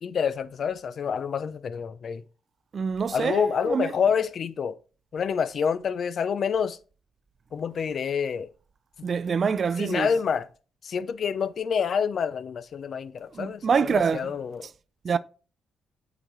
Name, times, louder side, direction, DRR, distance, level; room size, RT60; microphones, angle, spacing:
voice 1, 0.0-2.2 3.1-4.8 5.1-6.8 7.5-8.5 9.8-10.5 10.8-14.7, left 6 dB, 55° left, 0.4 m, -27 dB
voice 2, 2.7-3.9 9.0-10.1 13.3-14.3 15.0-15.2, right 6 dB, 45° right, 0.3 m, -25 dB
7.9 x 3.9 x 3.1 m
cardioid pair, 90°, 0 cm